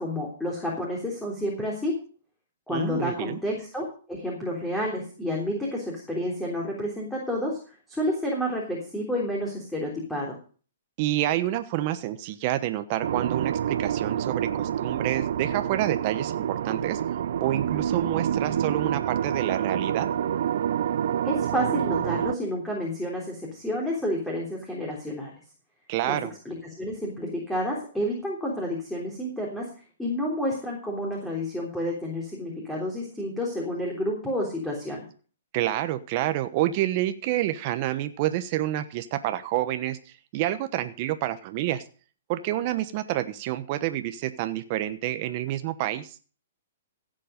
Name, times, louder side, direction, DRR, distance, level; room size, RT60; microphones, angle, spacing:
voice 1, 0.0-2.0 2.7-7.6 7.9-10.4 21.2-25.3 26.1-26.2 26.5-29.7 30.0-35.0, left 1 dB, 5° left, -2 dB, 3.5 m, -30 dB
voice 2, 2.7-3.4 11.0-17.0 17.4-20.1 25.9-26.3 35.5-41.8 42.3-46.1, right 14 dB, 40° right, 9 dB, 1.1 m, -28 dB
sound 1, 13.0-22.4, right 9 dB, 65° right, 0.5 m, -27 dB
16.0 x 7.7 x 5.2 m, 0.39 s
hypercardioid pair, 145°, 0 cm